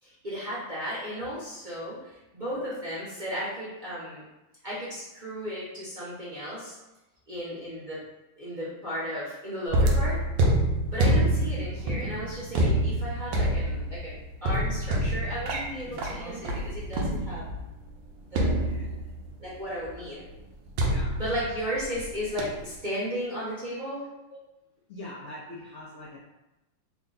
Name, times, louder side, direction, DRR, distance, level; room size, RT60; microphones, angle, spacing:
voice 1, 0.0-4.2 4.6-6.8 7.3-8.0 8.4-10.2 10.9-17.4 18.3-18.7 19.4-20.2 21.1-24.0, equal, 35° right, -9 dB, 0.8 m, -35 dB
sound 1, 9.7-17.6 18.4-19.4 20.8-22.1 22.4-22.7, right 1 dB, 80° right, 1.3 m, -26 dB
voice 2, 18.4-19.0 20.1-20.3 20.9-21.2 24.3-24.4 24.9-26.2, left 1 dB, 80° left, -6 dB, 0.6 m, -43 dB
3.6 x 2.2 x 3.8 m, 0.97 s
omnidirectional pair, 2.1 m